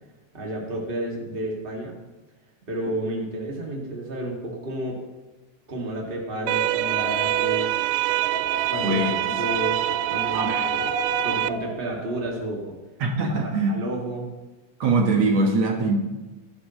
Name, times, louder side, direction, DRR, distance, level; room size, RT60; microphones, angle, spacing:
voice 1, 0.3-2.0 2.7-5.0 5.7-7.8 8.7-9.0 9.4-9.8 10.1-10.5 10.8-10.9 11.2-12.8 13.7-14.3, right 1 dB, 20° right, -2 dB, 2.2 m, -31 dB
Wind, 6.5-12.5, equal, 40° left, 4.2 m, -34 dB
sound 1, 6.5-11.5, right 17 dB, 85° right, 1.9 m, -25 dB
voice 2, 8.8-9.1 10.3-10.7 13.0-13.7 14.8-16.0, right 3 dB, 65° right, 1 dB, 2.5 m, -22 dB
20.0 x 11.5 x 3.2 m, 1.1 s
omnidirectional pair, 3.3 m